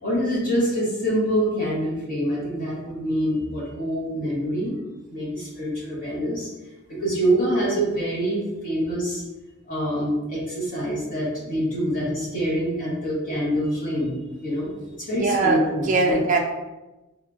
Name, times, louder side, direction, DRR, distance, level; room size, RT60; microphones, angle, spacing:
voice 1, 0.0-4.8 5.1-6.5 6.9-9.2 9.7-14.7 15.0-16.2, equal, 40° left, -7 dB, 1.3 m, -25 dB
voice 2, 15.1-16.4, right 3 dB, 40° right, 1 dB, 0.4 m, -22 dB
3.5 x 2.3 x 2.6 m, 1.0 s
head